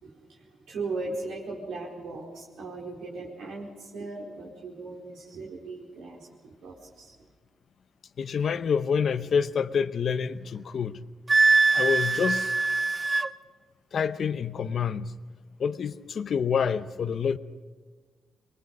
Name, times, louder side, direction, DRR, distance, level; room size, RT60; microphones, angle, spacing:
voice 1, 0.0-7.1, right 3 dB, 85° right, 4.6 m, -38 dB
voice 2, 8.2-11.0 11.7-12.5 13.9-15.1 15.6-17.4, left 6 dB, 60° left, 0.8 m, -27 dB
Wind instrument woodwind instrument, 11.3-13.3, right 4 dB, 25° right, 0.6 m, -22 dB
24.5 x 21.5 x 5.4 m
cardioid pair, 100°, 0 cm